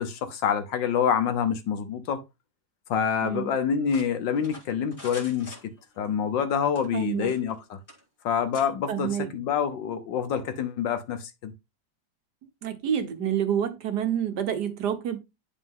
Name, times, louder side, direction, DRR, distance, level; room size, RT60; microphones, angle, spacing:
voice 1, 0.0-2.2 2.9-5.6 6.0-7.8 8.2-11.5, left 7 dB, 75° left, 1.6 m, -27 dB
voice 2, 3.2-3.5 6.9-7.3 8.9-9.3 12.6-15.2, right 9 dB, 65° right, 1.6 m, -28 dB
sound 1, 3.9-6.1 6.7-7.6 7.9-8.0 8.5-8.7, left 1 dB, 30° left, 2.0 m, -45 dB
10.0 x 4.0 x 3.7 m
omnidirectional pair, 2.0 m